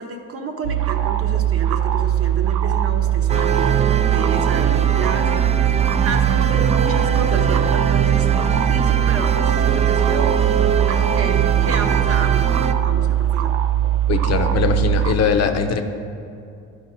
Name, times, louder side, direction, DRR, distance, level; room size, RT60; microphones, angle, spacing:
voice 1, 0.0-5.5 5.7-10.4 10.9-13.6, right 4 dB, 50° right, 4 dB, 0.9 m, -30 dB
sound 1, 0.6-15.1, right 11 dB, 80° right, 0.5 m, -20 dB
sound 2, 3.3-12.7, right 6 dB, 25° right, 0.4 m, -22 dB
voice 2, 14.1-15.8, left 6 dB, 55° left, 7 dB, 0.7 m, -20 dB
11.5 x 5.0 x 4.1 m, 2.5 s
cardioid pair, 90°, 30 cm